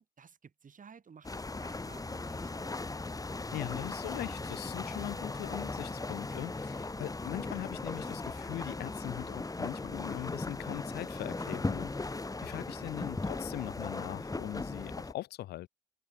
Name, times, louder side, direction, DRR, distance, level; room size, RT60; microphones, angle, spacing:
voice 1, 0.0-2.7, right 6 dB, 55° right, 6.1 m, -55 dB
sound 1, 1.2-15.1, left 3 dB, 20° left, 1.2 m, -38 dB
voice 2, 3.5-15.7, left 15 dB, 85° left, 0.5 m, -41 dB
supercardioid pair, 60°, 16 cm